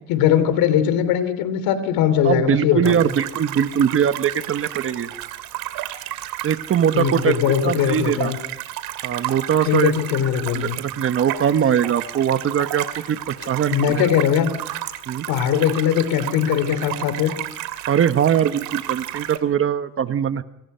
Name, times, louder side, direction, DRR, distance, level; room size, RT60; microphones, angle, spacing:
voice 1, 0.1-3.0 6.9-8.4 9.7-10.8 13.7-14.5 15.3-17.4, left 9 dB, 75° left, 12 dB, 3.4 m, -20 dB
voice 2, 2.2-5.1 6.4-7.3 7.6-8.3 9.0-9.9 10.5-14.1 15.1-15.2 17.9-20.4, right 8 dB, 35° right, 10 dB, 1.2 m, -21 dB
sound 1, 2.8-19.4, right 14 dB, 80° right, 2.6 m, -32 dB
27.5 x 27.0 x 5.7 m, 0.89 s
cardioid pair, 125°, 35 cm